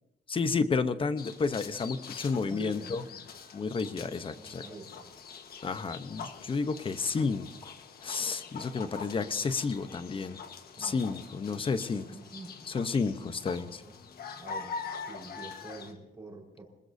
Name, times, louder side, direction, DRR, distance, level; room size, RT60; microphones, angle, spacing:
voice 1, 0.3-3.0 3.5-4.6 5.6-7.7 8.0-10.4 10.8-12.0 12.7-13.8, left 4 dB, 30° left, 12 dB, 0.8 m, -31 dB
sound 1, 1.2-15.9, left 5 dB, 70° left, 1.4 m, -44 dB
voice 2, 2.3-3.3 4.2-5.1 10.8-11.2 12.0-12.7 13.4-14.0 14.4-16.6, right 3 dB, 20° right, -2 dB, 4.4 m, -47 dB
26.5 x 20.0 x 2.7 m, 0.86 s
wide cardioid pair, 160°, 17 cm